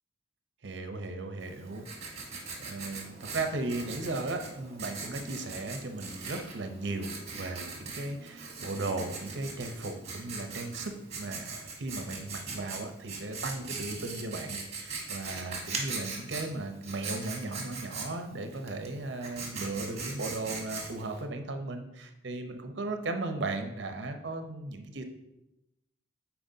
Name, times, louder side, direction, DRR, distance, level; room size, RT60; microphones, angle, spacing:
voice 1, 0.6-2.3 2.6-25.0, right 2 dB, 70° right, 6 dB, 0.7 m, -36 dB
Writing, 1.4-21.2, right 4 dB, 35° right, 1.2 m, -41 dB
8.9 x 4.6 x 2.7 m, 0.93 s
head